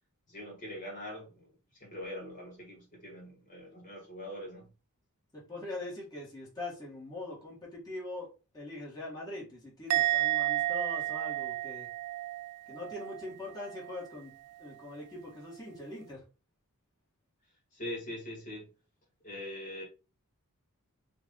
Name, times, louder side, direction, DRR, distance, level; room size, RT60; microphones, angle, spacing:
voice 1, 0.3-4.7 17.7-18.7 19.2-19.8, left 1 dB, 35° left, 1.9 m, -42 dB
voice 2, 5.3-8.3 8.5-11.9 12.7-16.2, left 2 dB, 15° left, 1.9 m, -42 dB
Musical instrument, 9.9-13.3 13.6-14.0, right 16 dB, 75° right, 0.3 m, -32 dB
4.9 x 2.5 x 3.9 m
head